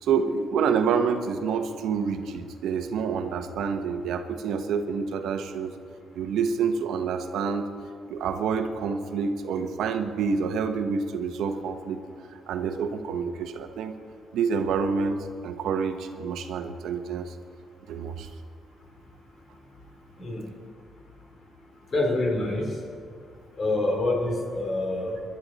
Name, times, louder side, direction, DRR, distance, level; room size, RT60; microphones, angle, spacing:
voice 1, 0.0-5.7 6.1-7.7 8.1-12.0 12.5-13.9 14.3-17.3 17.9-18.3, right 6 dB, 80° right, 7 dB, 0.9 m, -28 dB
voice 2, 20.2-20.5 21.9-22.7 23.6-25.1, left 2 dB, 45° left, 1 dB, 3.1 m, -26 dB
19.5 x 12.0 x 4.0 m, 2.2 s
cardioid pair, 90°, 0 cm